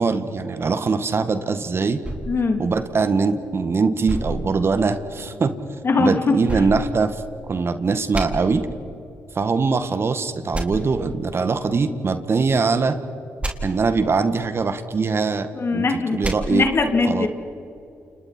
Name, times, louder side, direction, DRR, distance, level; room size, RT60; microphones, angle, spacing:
voice 1, 0.0-2.0 2.6-5.5 6.0-7.2 7.5-8.7 9.4-13.0 13.6-16.7 17.0-17.3, right 4 dB, 45° right, 10 dB, 1.7 m, -22 dB
sound 1, 2.0-3.5 4.1-5.3 6.5-7.6 8.1-8.2 10.5-10.6 13.4-13.5 16.2-16.4, right 1 dB, 20° right, 4.3 m, -30 dB
voice 2, 2.3-2.6 5.8-6.1 15.5-16.2 16.5-17.3, left 3 dB, 45° left, 4 dB, 3.2 m, -20 dB
30.0 x 29.0 x 4.5 m, 2.8 s
hypercardioid pair, 45°, 6 cm